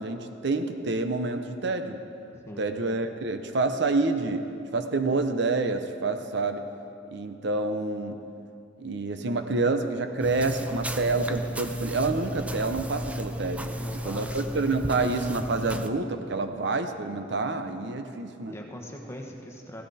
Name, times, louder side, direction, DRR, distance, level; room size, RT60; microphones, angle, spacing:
voice 1, 0.0-2.0 2.6-4.5 4.7-6.7 7.1-8.2 8.8-13.8 14.0-18.5, right 3 dB, 65° right, 7 dB, 0.7 m, -28 dB
voice 2, 2.3-2.6 13.6-15.0 18.3-19.8, equal, 15° left, 0 dB, 1.3 m, -42 dB
sound 1, 10.2-15.9, equal, 5° right, 0.5 m, -34 dB
16.0 x 13.5 x 4.2 m, 2.6 s
head